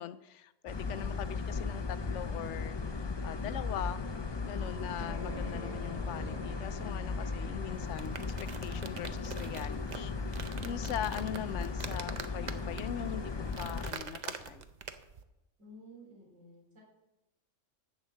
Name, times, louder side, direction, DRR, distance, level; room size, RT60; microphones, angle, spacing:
voice 1, 0.0-4.0 4.4-14.7, left 10 dB, 75° left, 12 dB, 0.9 m, -41 dB
sound 1, 0.7-13.9, left 4 dB, 30° left, 0.5 m, -37 dB
sound 2, 4.6-13.9, equal, 55° left, 1.9 m, -51 dB
sound 3, 7.8-15.2, right 5 dB, 45° right, 0.7 m, -45 dB
voice 2, 15.6-16.8, equal, 85° right, -3 dB, 4.2 m, -53 dB
10.5 x 6.5 x 7.5 m, 0.93 s
omnidirectional pair, 1.3 m